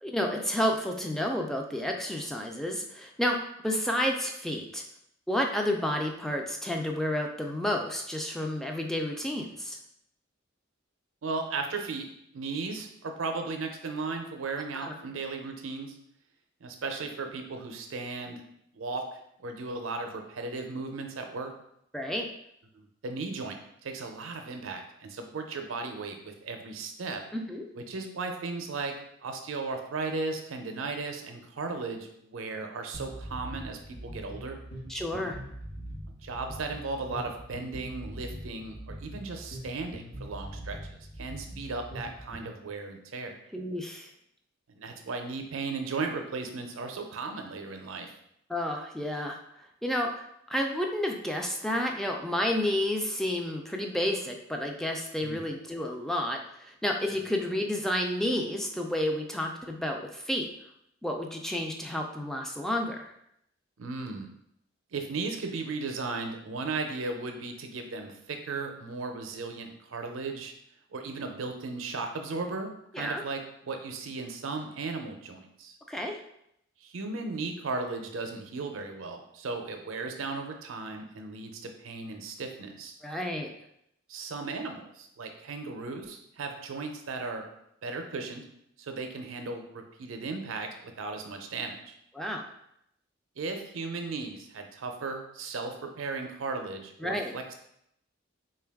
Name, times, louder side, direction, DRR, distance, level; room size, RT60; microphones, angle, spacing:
voice 1, 0.0-3.4 3.6-4.8 5.3-9.8 14.8-14.9 21.9-22.3 27.3-27.7 34.9-35.4 43.5-44.1 48.5-49.4 49.8-60.5 61.0-63.1 72.9-73.2 75.9-76.2 83.0-83.5 92.1-92.4 97.0-97.3, left 1 dB, ahead, 2 dB, 0.3 m, -30 dB
voice 2, 11.2-12.1 12.3-15.9 16.6-18.4 18.7-19.0 19.4-21.5 22.7-27.2 27.8-28.9 29.2-34.6 36.1-43.4 44.7-48.1 55.2-55.4 63.8-64.3 64.9-70.5 70.9-75.7 76.8-83.0 84.1-87.4 87.8-88.4 88.8-91.9 93.4-97.6, right 3 dB, 90° right, 5 dB, 0.5 m, -36 dB
sound 1, 32.9-42.5, right 1 dB, 50° left, 0.9 m, -42 dB
3.7 x 2.3 x 3.4 m, 0.76 s
head